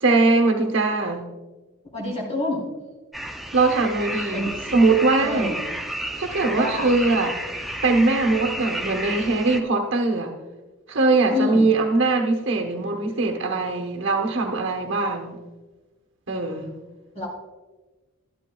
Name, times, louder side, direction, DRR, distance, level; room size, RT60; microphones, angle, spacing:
voice 1, 0.0-1.2 3.5-5.5 6.2-7.4 7.8-10.3 10.9-15.4 16.3-16.7, right 3 dB, 55° right, 3 dB, 1.1 m, -21 dB
voice 2, 1.9-2.7 3.7-3.9 4.3-4.7 5.2-5.6 6.5-6.9 11.3-11.7 17.1-17.3, left 2 dB, 30° left, -4 dB, 3.5 m, -28 dB
sound 1, 3.1-9.6, right 1 dB, ahead, 0.4 m, -32 dB
13.0 x 11.5 x 2.3 m, 1.2 s
head